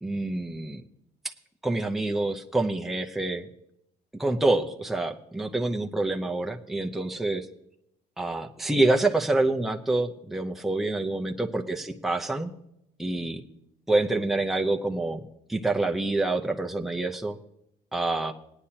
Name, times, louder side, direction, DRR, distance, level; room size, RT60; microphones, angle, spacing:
voice 1, 0.0-0.8 1.6-3.5 4.2-7.5 8.2-12.5 13.0-13.4 13.9-15.2 15.5-17.4 17.9-18.3, right 2 dB, ahead, 2 dB, 0.8 m, -27 dB
18.5 x 9.9 x 2.9 m, 0.79 s
cardioid pair, 110°, 17 cm